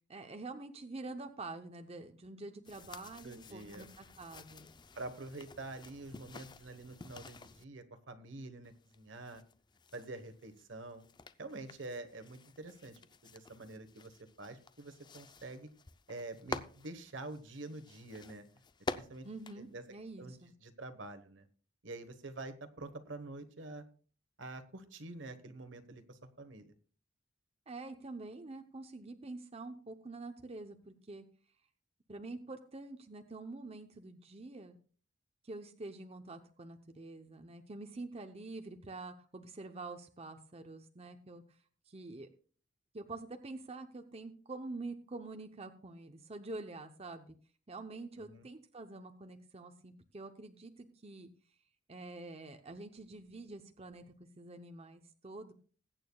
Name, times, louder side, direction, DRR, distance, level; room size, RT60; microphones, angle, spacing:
voice 1, 0.1-4.7 19.2-20.5 27.7-31.3 32.1-34.8 35.4-41.6 41.9-42.3 42.9-47.3 47.7-51.3 51.9-55.5, right 2 dB, 30° right, 6 dB, 0.7 m, -47 dB
sound 1, 2.6-7.6 8.6-20.5, left 3 dB, 25° left, 0.5 m, -49 dB
voice 2, 3.2-3.8 5.0-9.4 9.9-11.1 11.4-14.1 14.4-15.7 16.1-18.4 18.9-19.3 19.6-19.8 20.2-20.3 20.6-21.5 21.8-23.8 24.4-26.7 48.2-48.4, right 2 dB, 70° right, 9 dB, 1.2 m, -47 dB
21.0 x 9.0 x 2.3 m, 0.42 s
head